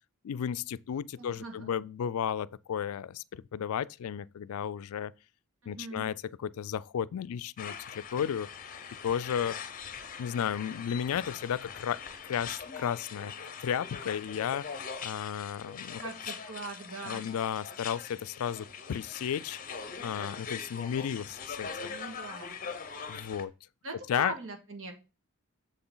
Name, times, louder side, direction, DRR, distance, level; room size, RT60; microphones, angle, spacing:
voice 1, 0.2-5.1 5.7-8.5 9.0-9.6 10.2-13.3 13.6-14.6 15.0-16.0 17.0-19.6 20.0-22.0 23.1-23.5 24.1-24.3, left 8 dB, 75° left, 0.3 m, -33 dB
voice 2, 1.2-1.7 5.6-6.1 16.0-17.2 21.9-22.6 23.8-24.9, right 3 dB, 65° right, 1.8 m, -41 dB
sound 1, 7.6-23.4, left 6 dB, 35° left, 0.7 m, -42 dB
6.9 x 5.9 x 3.9 m
head